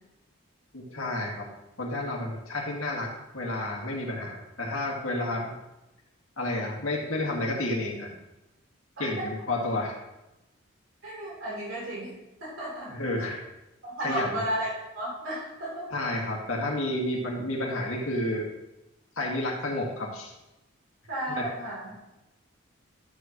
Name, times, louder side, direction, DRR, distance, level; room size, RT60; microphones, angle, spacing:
voice 1, 0.7-1.5 1.8-5.5 6.4-8.1 9.0-10.0 12.9-13.4 14.0-14.4 15.9-18.5 19.2-20.3 21.4-21.5, left 1 dB, 90° left, -2 dB, 2.0 m, -30 dB
voice 2, 9.0-9.3 11.0-12.1 12.4-12.9 13.8-14.7 14.9-15.9 21.1-21.9, right 1 dB, 75° right, -7 dB, 3.5 m, -33 dB
13.0 x 7.3 x 3.0 m, 0.95 s
head